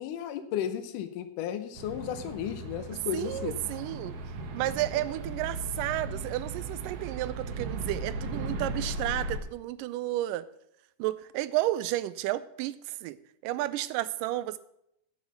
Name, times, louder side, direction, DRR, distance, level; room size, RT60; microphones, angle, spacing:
voice 1, 0.0-3.6 4.9-5.0, left 10 dB, 80° left, 9 dB, 2.3 m, -34 dB
sound 1, 1.8-9.4, right 2 dB, 65° right, 2.3 m, -37 dB
voice 2, 3.1-4.2 4.5-10.4 11.0-13.2 13.4-14.6, right 15 dB, 90° right, 15 dB, 2.2 m, -32 dB
8.3 x 6.4 x 8.2 m, 0.76 s
omnidirectional pair, 3.7 m